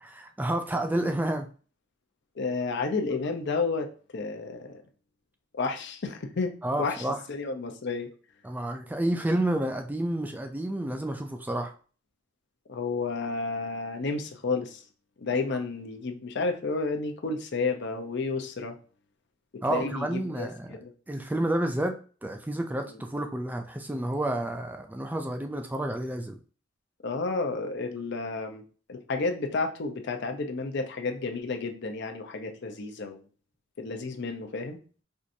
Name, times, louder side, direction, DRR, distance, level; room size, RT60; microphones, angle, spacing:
voice 1, 0.0-1.5 6.6-7.2 8.4-11.7 19.6-20.7 21.1-26.4, right 1 dB, 10° right, 0.3 m, -30 dB
voice 2, 2.4-4.8 5.5-8.1 12.7-14.8 15.2-18.8 19.7-20.9 27.0-28.6 28.9-33.2 33.8-34.8, left 3 dB, 60° left, 0.6 m, -31 dB
4.5 x 2.5 x 2.6 m
head